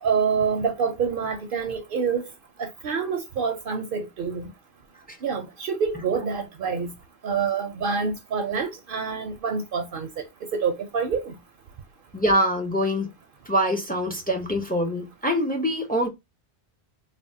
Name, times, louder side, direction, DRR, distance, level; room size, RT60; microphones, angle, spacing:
voice 1, 0.0-2.3 2.6-4.5 5.2-6.9 7.2-10.2 10.5-11.4, right 5 dB, 60° right, 0.6 m, -27 dB
voice 2, 12.1-13.1 13.5-16.1, equal, 15° left, 0.3 m, -24 dB
3.4 x 2.1 x 2.5 m
omnidirectional pair, 1.1 m